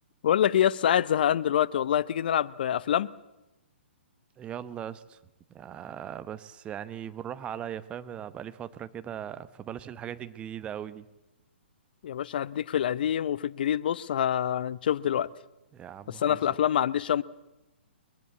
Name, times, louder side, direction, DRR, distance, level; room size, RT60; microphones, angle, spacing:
voice 1, 0.2-3.1 12.0-15.3 16.1-17.2, left 10 dB, 50° left, 0.8 m, -26 dB
voice 2, 4.4-5.2 5.5-11.1 15.7-16.4, right 9 dB, 15° right, 0.9 m, -39 dB
22.0 x 22.0 x 8.4 m
figure-of-eight pair, 120°, 6 cm